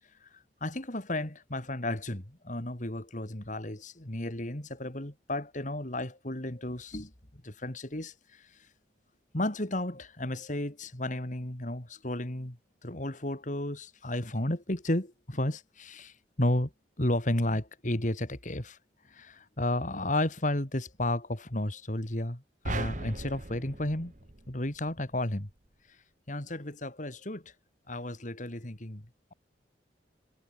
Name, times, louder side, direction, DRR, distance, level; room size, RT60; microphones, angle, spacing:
voice 1, 0.6-8.5 9.3-12.6 12.8-16.7 17.0-18.8 19.1-24.1 24.5-25.5 26.3-27.5 27.9-29.1, left 1 dB, 45° left, 2.9 m, -33 dB
sound 1, 22.6-25.1, right 2 dB, 45° right, 1.6 m, -38 dB
head